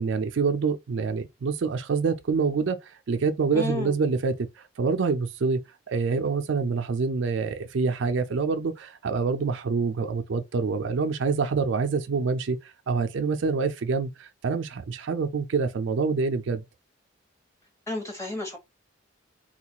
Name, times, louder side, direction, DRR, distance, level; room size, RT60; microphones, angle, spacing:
voice 1, 0.0-5.6 5.9-16.6, right 4 dB, 60° right, 0.4 m, -26 dB
voice 2, 3.5-4.0 17.9-18.6, left 2 dB, 15° left, 1.0 m, -31 dB
3.8 x 2.3 x 2.8 m
head